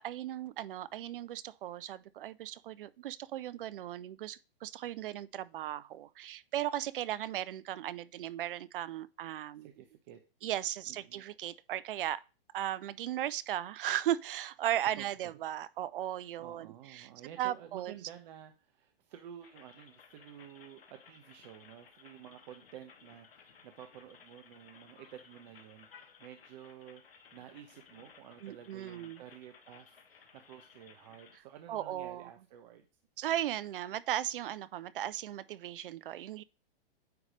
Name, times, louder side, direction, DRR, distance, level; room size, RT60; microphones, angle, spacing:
voice 1, 0.0-9.7 10.4-12.2 12.5-17.1 17.4-17.9 28.4-29.2 31.7-32.3 33.2-36.4, right 12 dB, 65° right, 0.6 m, -36 dB
voice 2, 9.6-10.2 10.9-11.2 15.0-15.1 16.1-32.9, right 10 dB, 50° right, 0.9 m, -52 dB
sound 1, 19.4-31.4, left 6 dB, 75° left, 1.6 m, -59 dB
9.4 x 3.2 x 5.0 m
hypercardioid pair, 130°, 29 cm